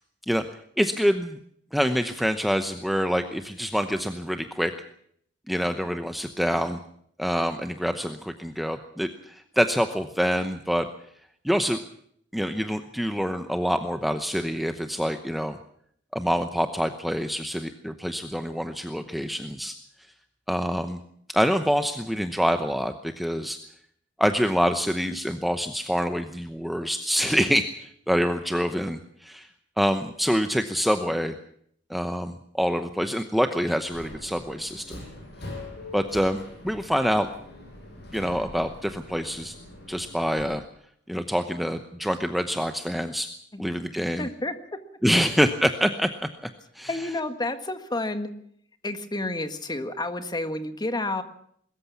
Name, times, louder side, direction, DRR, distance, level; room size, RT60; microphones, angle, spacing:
voice 1, 0.8-1.4 1.7-4.7 5.5-6.8 7.2-10.9 11.4-11.8 12.3-15.6 16.1-19.7 20.5-21.0 21.3-23.6 24.2-29.5 29.8-31.3 31.9-35.0 35.9-37.3 38.1-39.5 39.9-40.6 41.1-43.3 43.6-44.3 45.0-47.1, equal, ahead, 7 dB, 0.9 m, -26 dB
Subway metro underground, 33.8-40.4, left 2 dB, 60° left, 7.1 m, -43 dB
voice 2, 44.2-44.5 46.9-48.3 48.8-51.2, left 2 dB, 20° left, 9 dB, 1.7 m, -30 dB
22.0 x 14.0 x 8.5 m, 0.66 s
head